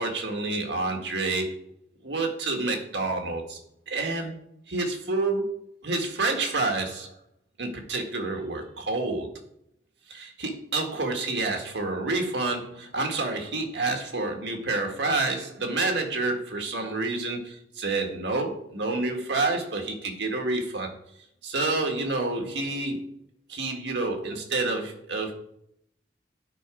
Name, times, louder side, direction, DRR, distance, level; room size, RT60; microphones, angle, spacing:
voice 1, 0.0-1.6 2.0-3.6 3.9-4.4 4.7-7.1 7.6-9.3 10.1-20.9 21.4-23.0 23.5-25.4, right 3 dB, 80° right, 3 dB, 1.7 m, -28 dB
11.0 x 4.9 x 4.9 m, 0.73 s
head